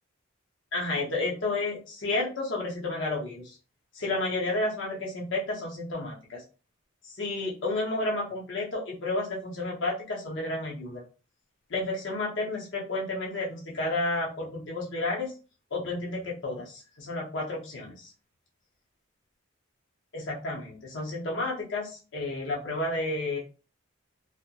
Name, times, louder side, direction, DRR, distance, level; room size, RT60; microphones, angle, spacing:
voice 1, 0.7-3.6 3.9-6.4 7.0-11.0 11.7-15.3 15.7-18.1 20.1-23.4, left 2 dB, 65° left, -3 dB, 0.6 m, -31 dB
2.7 x 2.0 x 2.2 m, 0.34 s
head